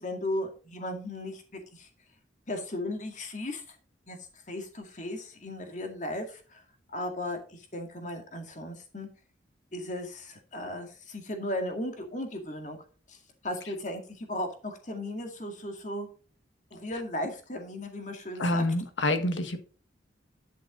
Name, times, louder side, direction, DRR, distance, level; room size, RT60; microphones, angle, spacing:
voice 1, 0.0-1.9 2.5-3.8 4.1-4.2 4.5-6.6 6.9-9.1 9.7-12.8 13.1-16.1 16.7-18.6, left 1 dB, 40° left, 4 dB, 2.2 m, -36 dB
voice 2, 18.4-19.6, left 1 dB, 85° left, 8 dB, 1.6 m, -27 dB
11.0 x 6.0 x 3.9 m, 0.38 s
head